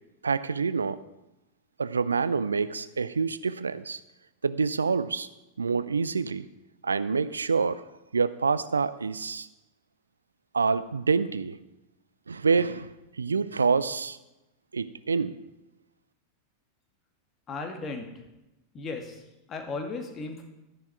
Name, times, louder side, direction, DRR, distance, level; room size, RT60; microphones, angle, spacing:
voice 1, 0.2-1.0 1.8-4.0 4.4-5.3 5.6-6.4 6.8-7.8 8.1-9.5 10.5-11.6 12.3-12.9 13.2-14.2 14.7-15.3, right 5 dB, 75° right, 16 dB, 0.5 m, -26 dB
voice 2, 17.5-18.1 18.7-19.2 19.5-20.4, left 3 dB, 25° left, 4 dB, 2.1 m, -35 dB
12.5 x 10.5 x 4.7 m, 0.98 s
figure-of-eight pair, 90°, 0 cm